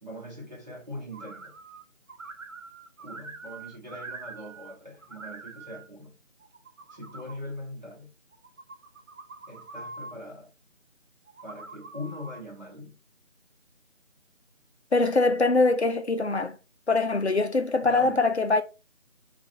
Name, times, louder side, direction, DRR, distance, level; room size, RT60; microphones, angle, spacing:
voice 1, 0.0-1.6 3.0-6.2 6.9-8.1 9.5-10.5 11.4-13.0 17.8-18.2, left 1 dB, 35° right, 1.1 m, -41 dB
sound 1, 1.1-1.8 2.1-4.7 5.0-5.9 6.4-7.4 8.3-10.1 11.3-12.4, right 3 dB, 75° right, 0.7 m, -44 dB
voice 2, 14.9-16.6 16.9-18.6, left 3 dB, 60° left, 0.5 m, -23 dB
4.7 x 2.4 x 2.7 m
figure-of-eight pair, 170°, 39 cm